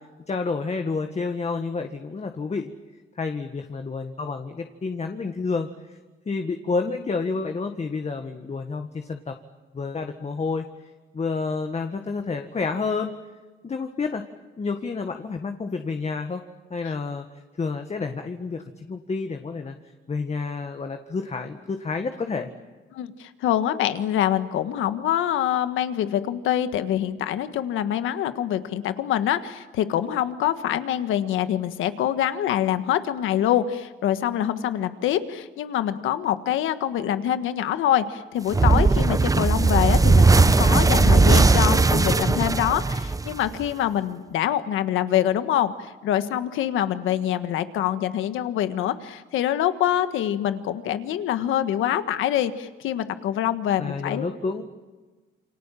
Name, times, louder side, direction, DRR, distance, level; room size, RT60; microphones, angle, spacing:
voice 1, 0.3-2.7 3.2-5.7 6.3-9.4 9.7-10.7 11.1-13.1 13.6-14.2 14.6-16.4 16.7-17.3 17.6-19.8 20.1-22.5 53.8-54.6, left 4 dB, 35° left, 5 dB, 1.8 m, -29 dB
voice 2, 22.9-54.2, left 11 dB, 85° left, 10 dB, 1.6 m, -25 dB
Plasma Fire Swoosh, 38.5-43.7, right 3 dB, 15° right, 0.8 m, -18 dB
28.5 x 25.5 x 7.6 m, 1.3 s
cardioid pair, 90°, 20 cm